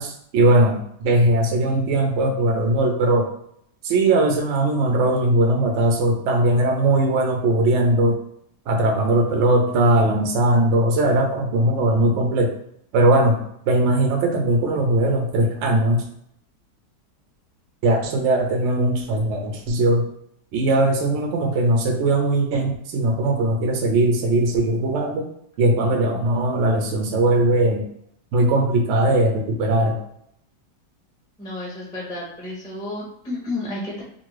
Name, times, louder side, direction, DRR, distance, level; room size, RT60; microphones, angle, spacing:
voice 1, 0.0-3.3 3.8-8.2 8.7-12.5 12.9-13.4 13.7-16.0 17.8-20.0 20.5-25.3 25.6-27.8 28.3-29.9, right 1 dB, 70° right, 2 dB, 0.7 m, -19 dB
voice 2, 31.4-34.0, left 2 dB, 5° left, -5 dB, 0.5 m, -31 dB
2.7 x 2.6 x 3.0 m, 0.69 s
omnidirectional pair, 1.9 m